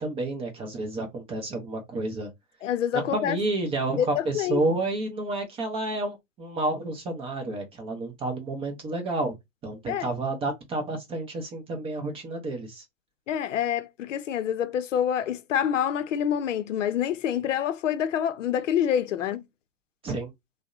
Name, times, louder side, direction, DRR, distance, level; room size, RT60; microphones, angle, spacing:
voice 1, 0.0-2.3 2.9-9.3 9.6-12.8 20.0-20.3, right 2 dB, 15° right, 0.5 m, -30 dB
voice 2, 2.6-3.4 4.0-4.6 9.9-10.1 13.3-19.4, left 9 dB, 75° left, 0.6 m, -27 dB
2.6 x 2.1 x 2.4 m
hypercardioid pair, 115°, 38 cm